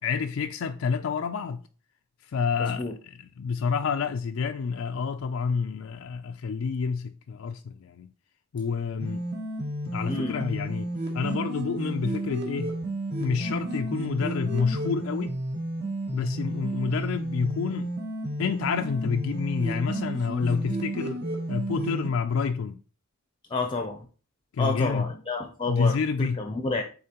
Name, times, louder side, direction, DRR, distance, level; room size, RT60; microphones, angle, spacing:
voice 1, 0.0-1.6 2.3-2.9 3.4-8.1 8.5-9.2 9.9-10.9 11.1-12.7 13.2-15.4 16.1-17.9 18.4-21.2 21.5-22.8 24.5-25.1 25.7-26.4, left 5 dB, 70° left, 0.4 m, -28 dB
voice 2, 2.6-2.9 10.1-10.5 23.5-24.0 24.6-26.8, left 3 dB, 25° left, 0.5 m, -30 dB
sound 1, 9.0-22.1, right 1 dB, 50° right, 1.3 m, -32 dB
8.5 x 3.9 x 2.9 m
head